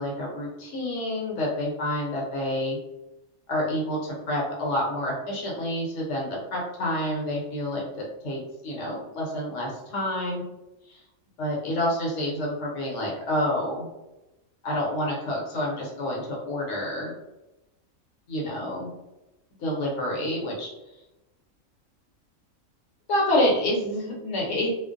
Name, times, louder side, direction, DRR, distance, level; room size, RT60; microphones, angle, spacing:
voice 1, 0.0-2.8 3.5-10.4 10.9-11.0 11.4-13.9 14.6-17.1 18.3-18.9 19.6-20.7 23.1-24.7, left 1 dB, 65° left, -2 dB, 1.1 m, -28 dB
2.5 x 2.0 x 2.5 m, 0.97 s
omnidirectional pair, 1.4 m